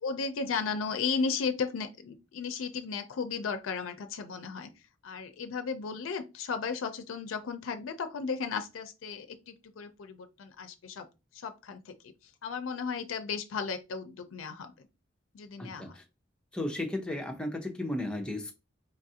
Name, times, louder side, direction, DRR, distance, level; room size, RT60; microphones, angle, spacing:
voice 1, 0.0-4.7 5.0-11.1 11.3-12.1 12.4-14.9 15.3-15.9, left 5 dB, 90° left, 0.4 m, -35 dB
voice 2, 15.6-16.0 16.5-18.5, left 1 dB, 5° left, 0.6 m, -34 dB
4.1 x 2.4 x 2.7 m
head